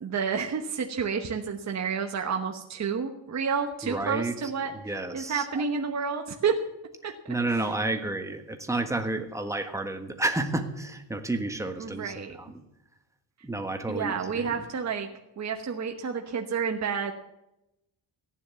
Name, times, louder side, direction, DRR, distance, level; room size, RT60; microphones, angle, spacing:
voice 1, 0.0-6.6 7.0-7.7 11.8-12.4 13.9-15.1 15.4-17.1, right 6 dB, 35° right, 3 dB, 1.1 m, -30 dB
voice 2, 3.8-4.3 4.8-5.4 7.0-12.1 13.4-14.5, right 2 dB, 5° right, 5 dB, 1.4 m, -30 dB
15.5 x 10.0 x 7.0 m, 0.88 s
wide cardioid pair, 155°, 45 cm